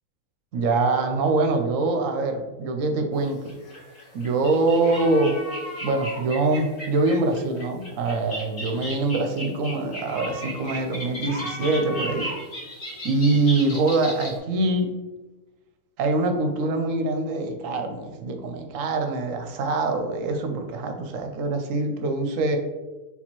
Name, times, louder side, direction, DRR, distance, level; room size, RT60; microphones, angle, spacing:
voice 1, 0.5-3.5 4.1-5.4 5.8-12.3 13.0-14.9 16.0-22.6, right 3 dB, 65° right, 5 dB, 0.9 m, -24 dB
sound 1, 3.2-14.4, equal, 50° left, 1.6 m, -35 dB
4.2 x 3.9 x 3.0 m, 1.2 s
omnidirectional pair, 1.6 m